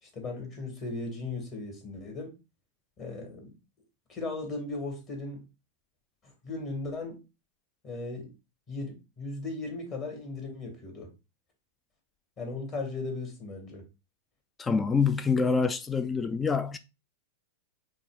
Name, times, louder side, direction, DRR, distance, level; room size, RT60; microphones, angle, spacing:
voice 1, 0.0-2.3 3.0-3.5 4.1-5.4 6.2-7.2 7.8-8.3 8.7-11.1 12.4-13.8, left 3 dB, 35° left, 1.8 m, -37 dB
voice 2, 14.6-16.8, left 5 dB, 15° left, 0.3 m, -26 dB
5.2 x 2.4 x 3.4 m
figure-of-eight pair, 95°, 0 cm